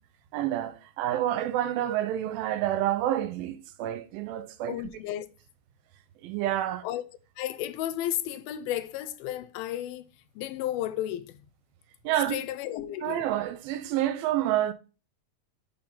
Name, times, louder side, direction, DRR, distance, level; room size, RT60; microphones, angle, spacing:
voice 1, 0.3-4.8 6.2-6.9 12.0-12.4 13.0-14.7, right 12 dB, 80° right, 2.4 m, -28 dB
voice 2, 4.7-5.3 6.8-7.0 7.4-10.1 10.4-11.5 12.3-13.3, left 12 dB, 85° left, 2.4 m, -33 dB
5.4 x 4.4 x 5.5 m
omnidirectional pair, 4.3 m